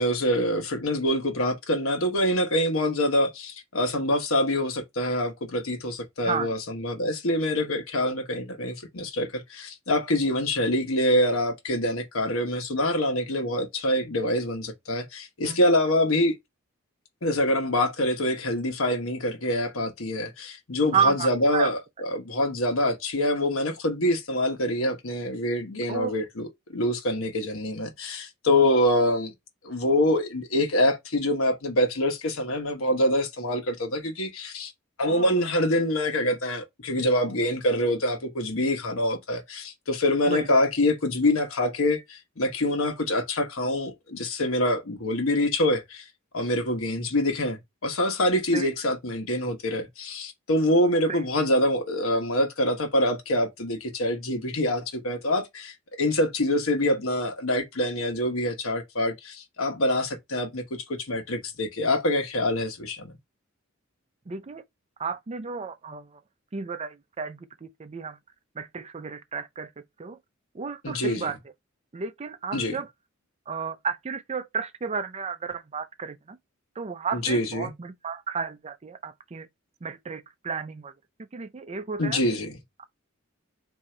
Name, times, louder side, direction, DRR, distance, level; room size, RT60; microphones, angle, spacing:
voice 1, 0.0-16.3 17.2-29.3 29.6-34.7 35.0-46.0 46.3-63.2 70.8-71.3 72.5-72.8 77.1-77.7 82.0-82.6, left 1 dB, 85° left, 1.1 m, -25 dB
voice 2, 20.9-21.7 25.9-26.1 35.1-35.2 40.3-40.5 48.5-48.7 51.1-51.2 64.3-64.6 65.0-66.1 66.5-68.2 68.6-69.7 70.0-70.2 70.6-71.4 71.9-72.9 73.5-76.4 76.8-79.5 79.8-80.9 81.3-82.2 82.8-82.9, right 6 dB, 30° right, 0.5 m, -32 dB
4.3 x 2.7 x 3.7 m
head